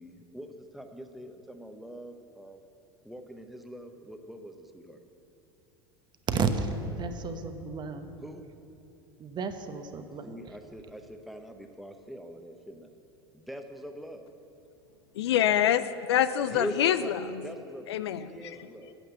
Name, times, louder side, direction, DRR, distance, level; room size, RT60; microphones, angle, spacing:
voice 1, 0.0-2.6 3.0-5.0 8.2-8.5 10.2-12.9 13.3-14.3 16.5-17.9 18.2-19.0, right 1 dB, ahead, 5 dB, 1.0 m, -42 dB
voice 2, 6.3-8.1 9.2-10.6, right 4 dB, 35° right, 8 dB, 0.9 m, -32 dB
voice 3, 15.2-17.4 17.9-18.6, left 10 dB, 75° left, 13 dB, 0.5 m, -26 dB
9.0 x 8.5 x 7.7 m, 2.8 s
hypercardioid pair, 80°, 14 cm